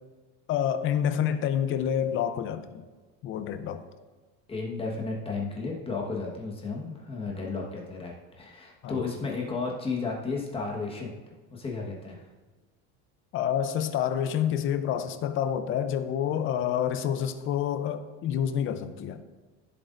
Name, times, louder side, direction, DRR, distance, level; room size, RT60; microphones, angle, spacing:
voice 1, 0.5-2.8 3.2-3.8 8.8-9.1 13.3-19.2, left 9 dB, 40° left, 10 dB, 0.7 m, -28 dB
voice 2, 4.5-11.1 11.5-12.2, left 4 dB, 15° left, -2 dB, 1.4 m, -33 dB
15.0 x 7.8 x 2.6 m, 1.3 s
cardioid pair, 150°, 32 cm